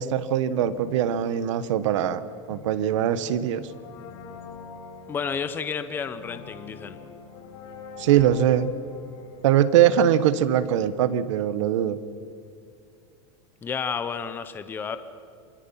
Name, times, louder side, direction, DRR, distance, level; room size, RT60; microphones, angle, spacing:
voice 1, 0.0-2.2 2.5-3.7 8.0-8.7 9.4-12.0, right 10 dB, 70° right, 13 dB, 1.3 m, -22 dB
sound 1, 0.5-10.7, left 5 dB, 60° left, 7.0 m, -45 dB
voice 2, 5.1-7.0 13.6-15.0, left 6 dB, 10° left, 11 dB, 0.8 m, -31 dB
27.5 x 23.0 x 5.7 m, 2.3 s
supercardioid pair, 165°, 17 cm